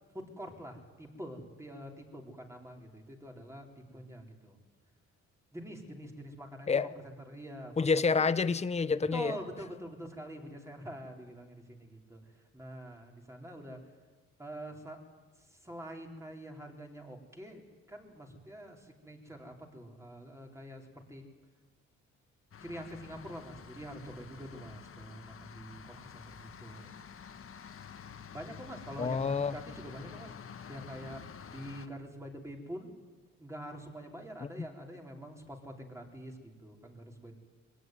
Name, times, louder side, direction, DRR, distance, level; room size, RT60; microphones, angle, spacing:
voice 1, 0.1-4.6 5.5-7.7 8.2-8.3 9.1-12.2 12.5-13.8 14.4-15.0 15.4-21.2 22.6-26.9 28.3-30.4 30.7-31.2 31.5-32.9 33.4-37.4, equal, 10° right, 1 dB, 4.2 m, -45 dB
voice 2, 7.8-9.3 29.0-29.5, left 5 dB, 20° left, 15 dB, 0.8 m, -28 dB
sound 1, 22.5-31.9, left 7 dB, 45° left, 1.4 m, -49 dB
22.0 x 17.5 x 9.4 m, 1.3 s
cardioid pair, 90°, 30 cm